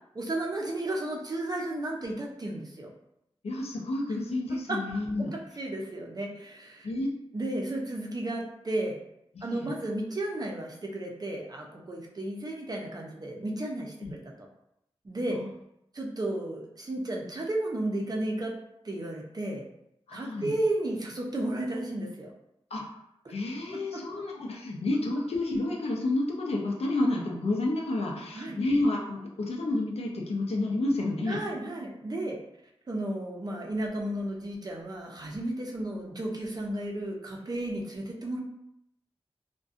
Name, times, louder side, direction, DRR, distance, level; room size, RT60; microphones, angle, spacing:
voice 1, 0.1-2.9 4.7-4.8 5.2-6.9 7.3-9.0 9.4-13.9 14.2-14.3 15.0-15.4 15.9-18.5 18.8-19.6 20.1-22.3 28.3-28.6 31.3-32.4 32.9-38.4, right 1 dB, 40° right, 0 dB, 0.5 m, -33 dB
voice 2, 3.4-5.3 6.8-7.1 9.4-9.7 14.0-14.1 15.3-15.5 20.1-20.5 22.7-22.8 23.3-31.4, left 2 dB, 80° left, -1 dB, 0.5 m, -30 dB
2.5 x 2.2 x 2.4 m, 0.79 s
wide cardioid pair, 80°, 10 cm